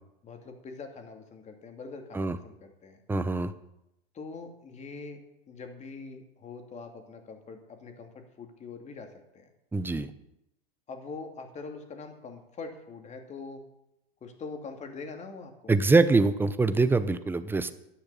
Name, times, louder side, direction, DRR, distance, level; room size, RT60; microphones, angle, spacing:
voice 1, 0.2-3.0 4.1-5.2 5.5-9.5 10.9-13.6 14.2-15.7, left 4 dB, 25° left, 4 dB, 2.7 m, -43 dB
voice 2, 3.1-3.5 9.7-10.1 15.7-17.7, right 3 dB, 5° right, 13 dB, 0.8 m, -24 dB
11.5 x 10.5 x 7.0 m, 0.86 s
hypercardioid pair, 110°, 30 cm